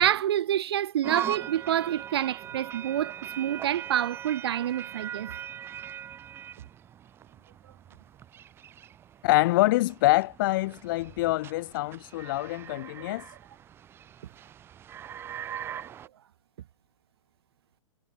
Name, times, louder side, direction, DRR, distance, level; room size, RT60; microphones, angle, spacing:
voice 1, 0.0-5.3, right 11 dB, 50° right, 0.8 m, -27 dB
sound 1, 1.0-16.1, right 9 dB, 15° right, 0.6 m, -41 dB
voice 2, 9.2-13.3, left 18 dB, 40° left, 1.7 m, -25 dB
figure-of-eight pair, 110°, 17 cm